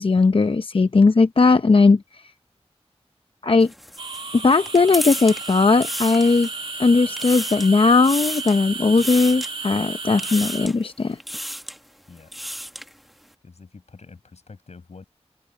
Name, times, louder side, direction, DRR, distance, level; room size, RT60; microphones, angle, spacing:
voice 1, 0.0-2.2 3.4-3.7 4.3-6.5 6.8-11.2, left 4 dB, 55° left, 0.7 m, -18 dB
sound 1, 3.6-6.7 7.0-7.7 8.0-8.6 9.0-9.5 10.2-10.8 11.2-11.8 12.2-12.9, equal, ahead, 1.3 m, -32 dB
sound 2, 4.0-10.7, right 4 dB, 55° right, 2.2 m, -33 dB
voice 2, 13.4-15.1, left 4 dB, 80° left, 6.1 m, -45 dB
wide cardioid pair, 70°, 11 cm